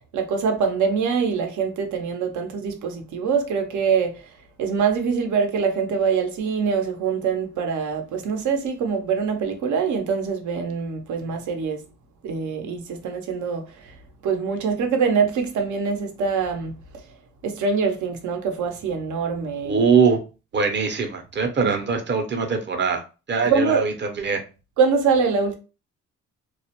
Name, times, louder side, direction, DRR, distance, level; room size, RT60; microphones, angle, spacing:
voice 1, 0.1-4.2 4.6-11.9 12.2-13.9 14.2-16.8 17.4-19.9 21.6-21.7 23.5-23.8 24.8-25.5, right 5 dB, 75° right, 0.7 m, -24 dB
voice 2, 19.6-20.2 20.5-23.0 23.3-24.4, right 5 dB, 35° right, 0.7 m, -22 dB
2.3 x 2.1 x 2.8 m
cardioid pair, 90°, 30 cm